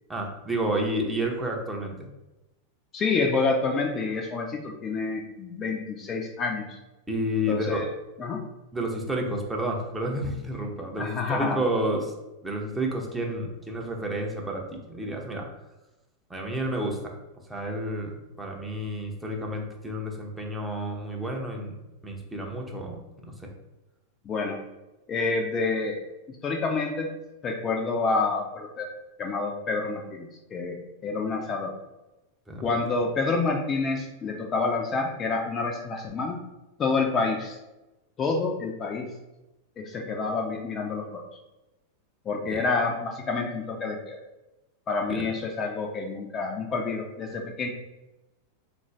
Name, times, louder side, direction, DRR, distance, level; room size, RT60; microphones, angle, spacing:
voice 1, 0.1-2.0 7.1-7.8 8.7-12.1 12.4-15.5 16.3-17.2 17.5-23.5 32.5-32.7 42.5-42.6 45.1-45.3, right 1 dB, 10° right, 0 dB, 0.7 m, -30 dB
voice 2, 2.9-6.8 7.5-7.9 8.2-8.5 11.0-11.7 24.2-24.6 25.1-26.0 26.3-27.1 27.4-28.9 29.2-31.7 32.6-36.4 36.8-37.6 38.2-39.1 39.8-41.3 42.3-44.2 44.9-47.7, left 4 dB, 25° left, 1 dB, 0.5 m, -28 dB
3.7 x 2.5 x 3.2 m, 0.99 s
figure-of-eight pair, 90°, 0 cm